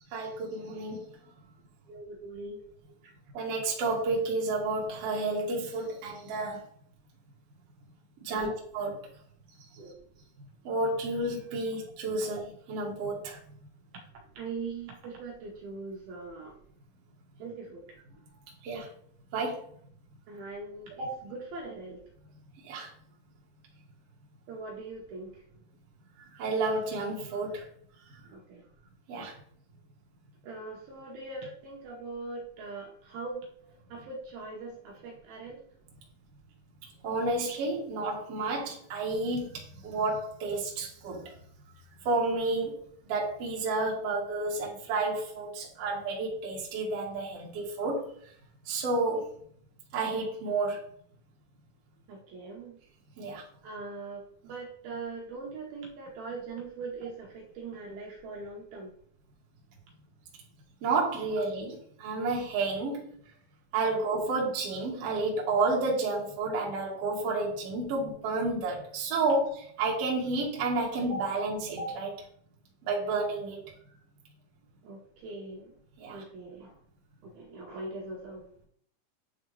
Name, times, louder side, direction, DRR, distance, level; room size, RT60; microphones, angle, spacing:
voice 1, 0.1-1.0 3.3-6.6 8.2-8.9 10.6-13.4 18.6-18.9 19.3-19.6 21.0-21.1 22.6-22.9 26.4-27.6 29.1-29.3 37.0-41.3 42.1-42.8 43.1-48.1 48.7-49.3 49.9-50.9 53.2-53.4 60.8-63.0 63.7-72.1 72.8-73.7 76.0-76.2, right 3 dB, 55° right, -3 dB, 1.9 m, -31 dB
voice 2, 1.9-2.6 3.0-3.1 8.3-8.5 9.8-9.9 13.9-14.0 14.4-16.6 17.4-17.8 20.3-22.0 24.5-25.4 28.2-28.6 30.4-33.5 33.9-35.6 52.1-52.8 53.6-58.9 63.8-64.0 74.8-75.8 76.1-76.8 77.2-78.5, right 3 dB, 70° right, -1 dB, 2.6 m, -41 dB
9.7 x 3.5 x 3.2 m, 0.62 s
omnidirectional pair, 4.9 m